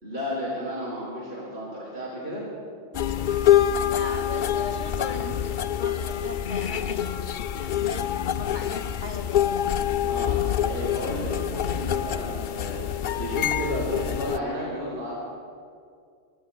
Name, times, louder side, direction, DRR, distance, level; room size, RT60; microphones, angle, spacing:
voice 1, 0.0-2.4 10.0-15.1, equal, 65° right, -8 dB, 4.8 m, -33 dB
sound 1, 2.9-14.4, left 10 dB, 60° left, 0.6 m, -26 dB
voice 2, 3.8-9.7, left 2 dB, 40° left, 4 dB, 1.9 m, -38 dB
25.5 x 25.0 x 2.2 m, 2.2 s
omnidirectional pair, 1.2 m